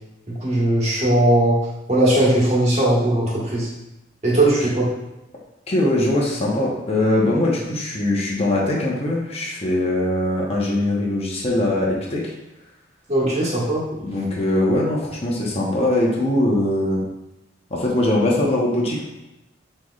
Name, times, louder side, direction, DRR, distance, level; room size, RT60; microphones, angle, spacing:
voice 1, 0.4-1.6 1.9-3.7 4.2-4.5 4.8-4.9 13.1-13.8, right 1 dB, 35° right, -6 dB, 1.4 m, -18 dB
voice 2, 5.7-12.3 14.0-17.0 17.7-19.1, left 1 dB, 35° left, -3 dB, 1.0 m, -21 dB
6.0 x 3.2 x 2.4 m, 0.95 s
head